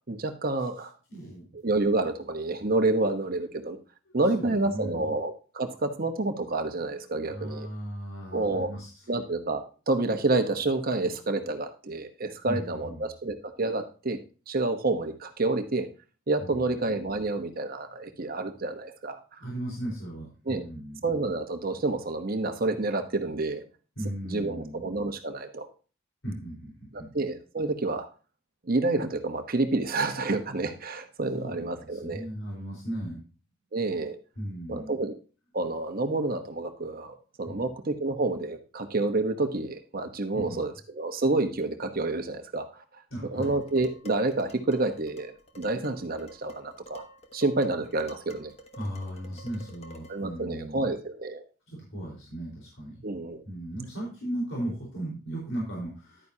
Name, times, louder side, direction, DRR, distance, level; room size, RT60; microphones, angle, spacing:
voice 1, 0.1-0.9 1.5-3.8 4.1-7.7 8.3-8.7 9.1-14.2 14.5-15.9 16.3-19.4 20.5-20.6 21.0-23.6 24.3-25.7 26.9-28.1 28.6-32.2 33.7-34.2 34.7-35.1 35.5-42.8 43.3-47.0 47.3-48.5 50.1-51.4 53.0-53.4, right 2 dB, 45° right, 7 dB, 1.0 m, -29 dB
voice 2, 1.1-1.4 3.5-3.6 4.1-5.1 7.3-9.0 12.4-13.1 16.4-16.8 19.4-21.0 24.0-24.8 26.2-27.1 31.4-33.2 34.4-35.0 37.5-37.7 40.3-40.6 43.1-43.5 48.7-50.9 51.7-53.1 53.5-56.3, right 1 dB, 70° left, -3 dB, 4.4 m, -37 dB
Dishes pots and pans, 43.4-50.3, right 1 dB, 30° left, 1.2 m, -50 dB
11.0 x 9.3 x 2.8 m, 0.35 s
head